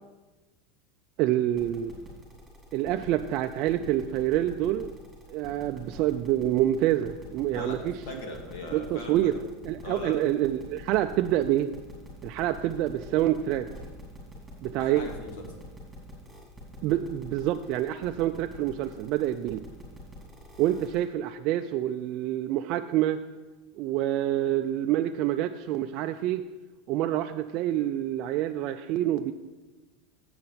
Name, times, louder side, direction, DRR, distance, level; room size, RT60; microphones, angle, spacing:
voice 1, 1.2-1.9 2.7-4.9 5.3-7.9 8.7-9.3 9.6-11.7 12.2-13.7 14.6-15.0 16.8-19.6 20.6-23.2 23.8-26.4 26.9-29.3, right 13 dB, 50° right, 6 dB, 0.3 m, -27 dB
sound 1, 1.6-21.0, right 1 dB, 5° right, 2.9 m, -47 dB
voice 2, 8.1-9.4 9.8-10.2 14.8-15.5, left 3 dB, 65° left, 2 dB, 2.0 m, -39 dB
7.8 x 5.6 x 7.4 m, 1.2 s
supercardioid pair, 145°, 0 cm